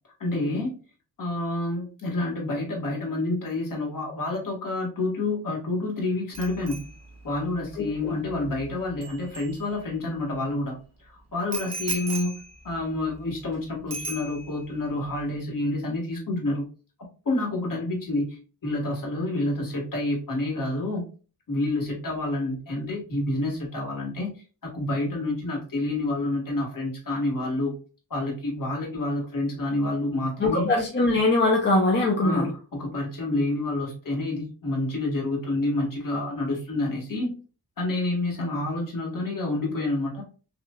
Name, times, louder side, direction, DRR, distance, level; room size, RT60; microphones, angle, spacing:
voice 1, 0.2-0.7 1.2-6.8 7.2-10.8 11.3-12.4 12.6-16.7 17.2-21.1 21.5-24.3 24.6-27.7 28.1-30.7 32.2-37.3 37.8-40.2, left 2 dB, 55° left, -1 dB, 1.6 m, -28 dB
Bicycle bell, 6.3-10.2 11.5-13.6 13.9-14.8 15.1-15.3, right 2 dB, 40° right, 0.8 m, -38 dB
voice 2, 7.8-8.2 30.4-32.5, left 2 dB, 25° left, -1 dB, 0.7 m, -22 dB
5.9 x 2.5 x 2.3 m, 0.36 s
wide cardioid pair, 155°, 40 cm